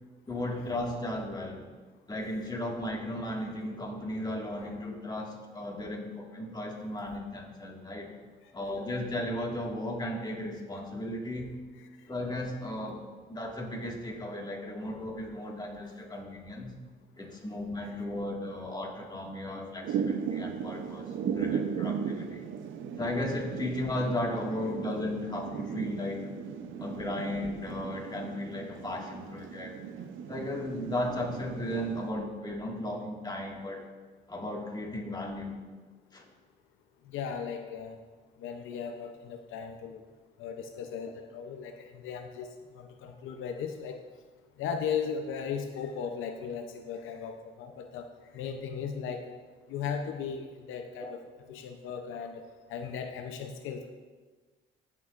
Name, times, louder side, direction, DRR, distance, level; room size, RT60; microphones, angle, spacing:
voice 1, 0.3-1.6 2.1-8.1 8.5-11.5 12.1-13.0 13.3-16.7 17.2-22.5 23.0-26.3 26.8-29.8 30.3-33.8 34.3-35.6 36.1-36.2 51.0-51.1, left 1 dB, 20° left, -1 dB, 1.8 m, -35 dB
Thunder / Rain, 19.8-32.1, right 7 dB, 75° right, 0.7 m, -37 dB
voice 2, 37.1-38.0 38.4-40.0 40.4-42.5 42.7-44.0 44.6-48.1 48.3-49.3 49.7-51.2 51.5-52.4 52.7-53.9, left 7 dB, 90° left, 5 dB, 0.7 m, -37 dB
15.5 x 6.7 x 2.5 m, 1.4 s
cardioid pair, 90°, 20 cm